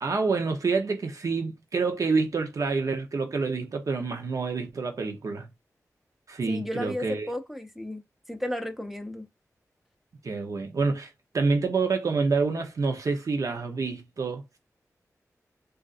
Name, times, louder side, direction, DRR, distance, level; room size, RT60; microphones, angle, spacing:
voice 1, 0.0-5.5 6.3-7.3 10.2-14.6, right 4 dB, 60° right, 0.8 m, -27 dB
voice 2, 6.5-8.0 8.3-9.3, left 1 dB, 5° right, 0.6 m, -33 dB
3.9 x 2.5 x 2.4 m
wide cardioid pair, 95°, 6 cm